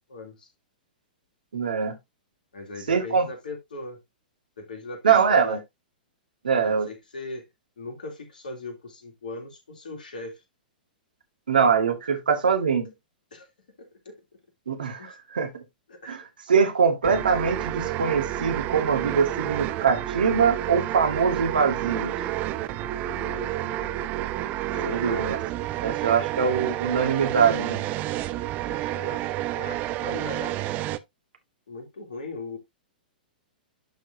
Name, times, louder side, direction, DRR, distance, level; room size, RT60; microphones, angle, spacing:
voice 1, 0.1-0.5 2.5-4.0 4.6-5.6 6.6-7.5 7.8-10.4 13.3-13.5 13.8-14.2 15.0-15.2 15.9-16.2 22.8-24.1 24.7-25.3 26.3-26.4 28.6-30.5 31.7-32.6, left 2 dB, 65° left, 3.2 m, -39 dB
voice 2, 1.5-2.0 2.9-3.3 5.0-5.6 6.4-6.9 11.5-12.9 14.7-15.6 16.1-16.2 16.5-22.1 24.8-25.4 25.8-27.8, right 6 dB, 70° right, 2.1 m, -23 dB
sound 1, 17.0-31.0, right 14 dB, 35° right, 0.7 m, -30 dB
11.5 x 4.7 x 2.8 m
figure-of-eight pair, 105°, 5 cm